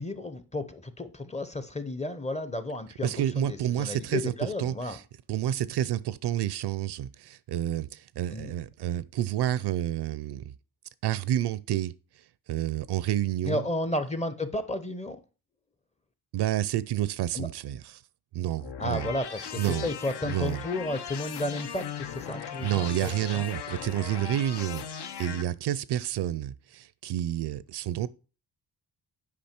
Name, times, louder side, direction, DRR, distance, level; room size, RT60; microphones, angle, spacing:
voice 1, 0.0-5.0 8.3-8.5 13.4-15.2 17.3-17.5 18.8-23.4, left 1 dB, 15° left, 0.6 m, -33 dB
voice 2, 3.0-4.3 4.6-5.0 5.3-10.5 11.0-11.9 12.5-13.6 16.3-18.0 18.3-19.1 19.6-19.9 20.2-20.6 22.6-28.1, right 12 dB, 75° right, 0.6 m, -29 dB
sound 1, 18.6-25.4, left 8 dB, 70° left, 0.9 m, -38 dB
8.6 x 5.2 x 4.4 m
cardioid pair, 125°, 41 cm